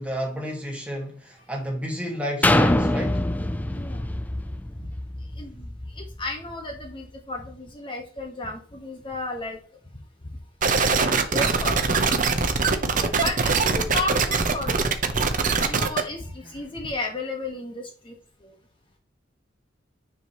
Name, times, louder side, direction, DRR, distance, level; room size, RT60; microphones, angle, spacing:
voice 1, 0.0-3.3 15.7-15.9 16.4-16.6, equal, 5° right, 1.9 m, -32 dB
sound 1, 2.4-6.2 6.7-6.8, left 1 dB, 10° left, 0.4 m, -24 dB
voice 2, 6.0-9.6 10.8-12.2 13.0-15.2 15.6-18.1 18.4-18.5, left 2 dB, 30° left, 1.4 m, -33 dB
sound 2, 10.6-16.0, right 4 dB, 45° right, 0.8 m, -22 dB
9.5 x 4.9 x 3.1 m
head